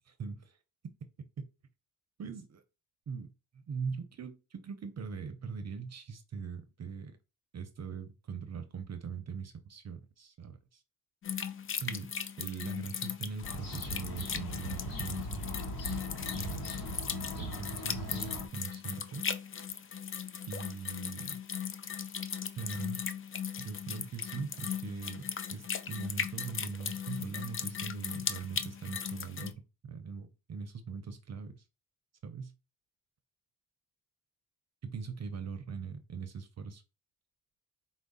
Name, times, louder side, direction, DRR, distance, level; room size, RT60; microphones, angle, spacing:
voice 1, 0.2-0.6 2.2-2.6 3.1-7.2 7.5-10.8 11.8-12.1 12.4-15.5 16.3-16.7 17.4-19.2 20.5-21.4 22.5-23.0 23.6-31.6 32.2-32.5 34.8-36.8, right 5 dB, 45° right, 0.7 m, -41 dB
sound 1, 11.2-29.5, left 7 dB, 35° left, 0.5 m, -38 dB
sound 2, 13.4-18.5, equal, 65° left, 1.2 m, -40 dB
4.6 x 2.1 x 3.9 m
cardioid pair, 75°, 38 cm